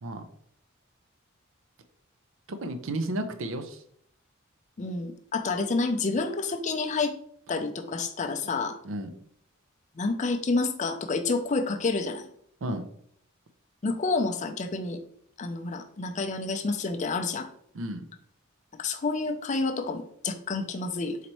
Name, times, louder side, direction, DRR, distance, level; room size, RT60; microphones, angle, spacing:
voice 1, 2.5-3.8 8.4-8.5 8.8-9.1 12.6-12.9 17.7-18.0, right 1 dB, 65° right, 8 dB, 0.5 m, -33 dB
voice 2, 4.8-7.1 7.5-8.8 10.0-12.3 13.8-15.0 15.4-17.5 18.8-21.2, left 3 dB, 35° left, 6 dB, 0.5 m, -29 dB
4.3 x 4.0 x 3.0 m, 0.67 s
head